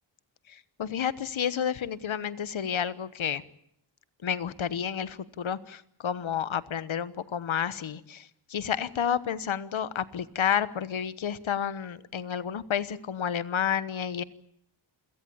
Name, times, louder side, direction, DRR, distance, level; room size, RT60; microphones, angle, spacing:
voice 1, 0.5-3.4 4.2-14.2, left 8 dB, 70° left, 16 dB, 1.2 m, -30 dB
28.0 x 17.5 x 8.6 m, 0.71 s
wide cardioid pair, 170°, 49 cm